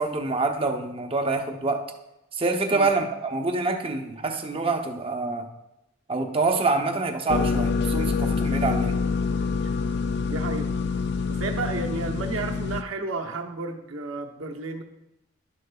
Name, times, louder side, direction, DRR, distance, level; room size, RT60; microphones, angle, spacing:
voice 1, 0.0-1.8 2.3-5.5 6.1-9.0, right 3 dB, 30° right, 4 dB, 0.7 m, -26 dB
sound 1, 7.3-12.8, left 5 dB, 55° left, 0.4 m, -26 dB
voice 2, 10.3-10.7 11.3-14.8, right 3 dB, 80° right, 3 dB, 0.9 m, -32 dB
12.0 x 6.5 x 2.3 m, 0.89 s
head